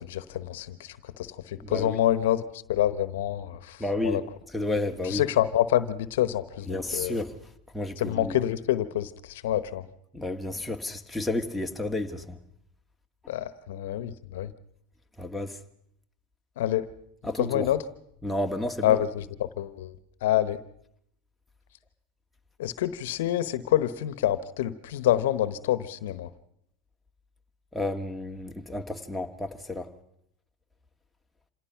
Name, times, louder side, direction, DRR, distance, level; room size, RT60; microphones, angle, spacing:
voice 1, 0.0-2.4 2.7-4.2 5.0-7.2 8.0-9.8 13.3-14.5 16.6-16.9 17.4-17.8 18.8-19.9 20.2-20.6 22.6-26.3, left 12 dB, 75° left, 14 dB, 1.1 m, -27 dB
voice 2, 1.7-2.0 3.8-4.2 4.5-5.2 6.7-7.3 7.7-8.4 10.1-12.4 15.2-15.6 17.2-17.7 18.2-19.0 27.7-29.9, left 2 dB, 5° left, 2 dB, 1.8 m, -31 dB
27.0 x 17.5 x 5.9 m, 0.75 s
hypercardioid pair, 105°, 0 cm